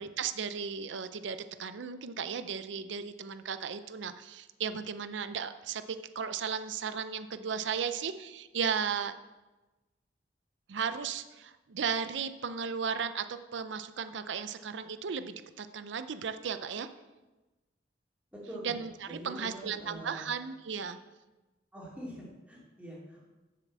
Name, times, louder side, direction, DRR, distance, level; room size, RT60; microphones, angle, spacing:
voice 1, 0.0-5.8 6.1-9.1 10.7-16.9 18.6-21.0, right 6 dB, 80° right, 11 dB, 0.5 m, -35 dB
voice 2, 18.3-18.7 19.1-20.2 21.7-23.3, right 1 dB, 10° right, -5 dB, 2.7 m, -44 dB
7.6 x 6.7 x 7.4 m, 1.1 s
head